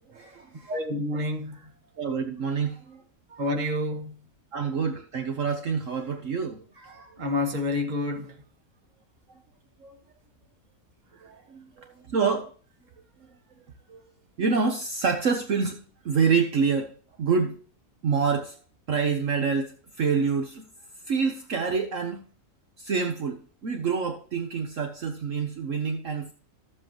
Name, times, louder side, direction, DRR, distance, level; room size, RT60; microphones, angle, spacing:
voice 1, 0.1-0.7 2.0-3.0 3.3-3.4 4.5-7.2 9.8-10.0 11.2-12.5 13.9-14.0 14.4-15.8 16.0-16.9 17.2-17.6 18.0-18.6 18.9-20.6 21.1-22.2 22.8-26.3, right 5 dB, 60° right, 1.2 m, -27 dB
voice 2, 0.7-1.6 3.4-4.2 7.2-8.3, left 2 dB, 30° right, 1.3 m, -28 dB
13.5 x 7.5 x 3.0 m
omnidirectional pair, 1.7 m